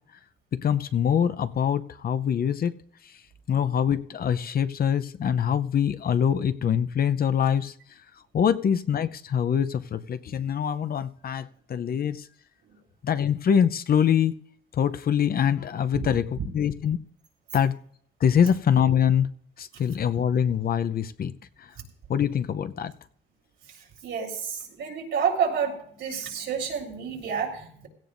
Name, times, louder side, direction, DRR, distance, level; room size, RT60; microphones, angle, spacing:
voice 1, 0.6-2.7 3.5-7.7 8.3-12.3 13.0-14.3 14.8-17.0 17.5-17.7 18.2-19.3 19.6-21.3 21.6-21.7 22.1-22.9, left 8 dB, 50° left, 0.7 m, -24 dB
voice 2, 24.0-25.7 26.0-27.9, right 6 dB, 75° right, 3.8 m, -29 dB
16.5 x 15.0 x 2.6 m
cardioid pair, 90°, 20 cm